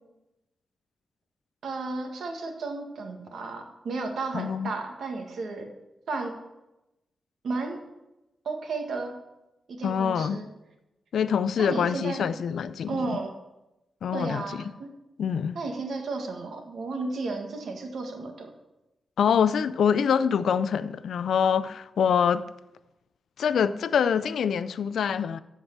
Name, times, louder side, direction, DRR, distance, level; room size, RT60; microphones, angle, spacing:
voice 1, 1.6-5.7 6.1-6.4 7.4-7.8 8.5-9.2 9.7-10.5 11.6-12.3 12.9-13.3 14.1-14.9 15.6-18.5, right 3 dB, 70° right, 1.7 m, -33 dB
voice 2, 4.3-4.7 9.8-10.4 11.1-13.2 14.0-14.4 15.2-15.6 19.2-22.5 23.4-25.4, left 7 dB, 80° left, 0.4 m, -25 dB
13.5 x 4.7 x 7.3 m
wide cardioid pair, 150°, 0 cm